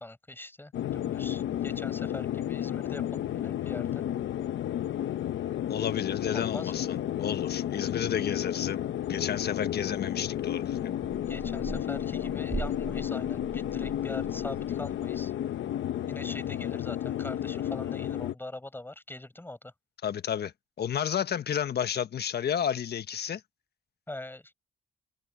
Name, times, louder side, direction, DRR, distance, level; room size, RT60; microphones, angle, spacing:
voice 1, 0.0-4.0 6.3-6.7 11.3-15.3 16.1-19.7 24.1-24.5, left 1 dB, 10° left, 5.3 m, -42 dB
sound 1, 0.7-18.3, left 11 dB, 70° left, 1.1 m, -32 dB
voice 2, 5.7-10.9 20.0-20.5 20.8-23.4, left 8 dB, 55° left, 1.4 m, -31 dB
sound 2, 10.2-15.2, right 4 dB, 25° right, 4.6 m, -41 dB
cardioid pair, 90°, 20 cm